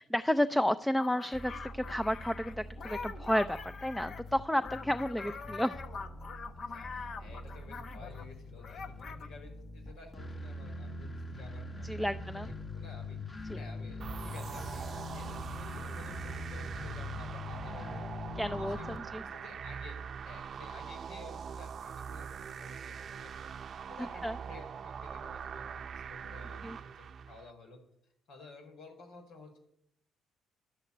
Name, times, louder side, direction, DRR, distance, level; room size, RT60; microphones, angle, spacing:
voice 1, 0.1-5.8 11.8-12.5 13.5-13.6 18.4-19.2 24.2-24.4 26.6-26.8, left 1 dB, 5° left, 12 dB, 0.5 m, -31 dB
sound 1, 1.0-8.3 8.6-9.3, left 5 dB, 55° left, 1.2 m, -44 dB
sound 2, 1.3-19.0, left 2 dB, 30° left, 1.7 m, -43 dB
voice 2, 6.7-18.1 18.5-20.0 20.2-27.8 28.3-29.6, left 3 dB, 85° left, 4 dB, 4.9 m, -53 dB
sound 3, 14.0-27.5, right 7 dB, 50° right, 0.7 m, -43 dB
12.0 x 11.5 x 8.5 m, 0.75 s
cardioid pair, 105°, 0 cm